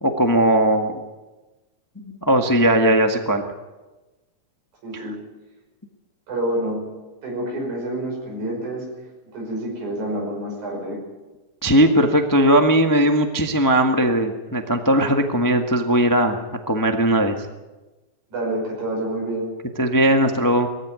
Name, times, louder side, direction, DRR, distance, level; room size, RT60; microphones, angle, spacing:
voice 1, 0.0-1.0 2.0-3.4 4.9-5.1 11.6-17.4 19.8-20.7, right 1 dB, 25° left, 5 dB, 0.4 m, -18 dB
voice 2, 4.8-5.2 6.3-6.8 7.2-8.8 9.3-11.0 18.3-19.5, right 1 dB, 90° right, -1 dB, 7.3 m, -27 dB
20.5 x 15.0 x 9.4 m, 1.1 s
omnidirectional pair, 3.3 m